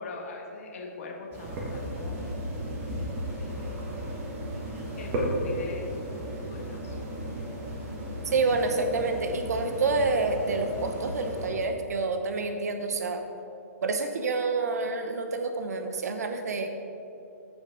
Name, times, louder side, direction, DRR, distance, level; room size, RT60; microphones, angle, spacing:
voice 1, 0.0-2.2 3.4-3.8 5.0-7.0, left 3 dB, 55° left, -1 dB, 1.7 m, -41 dB
sound 1, 1.3-11.5, equal, 25° right, 1.6 m, -34 dB
voice 2, 8.2-13.2 13.8-16.7, right 3 dB, 75° right, 6 dB, 0.8 m, -28 dB
14.5 x 5.0 x 3.9 m, 2.9 s
hypercardioid pair, 155°, 9 cm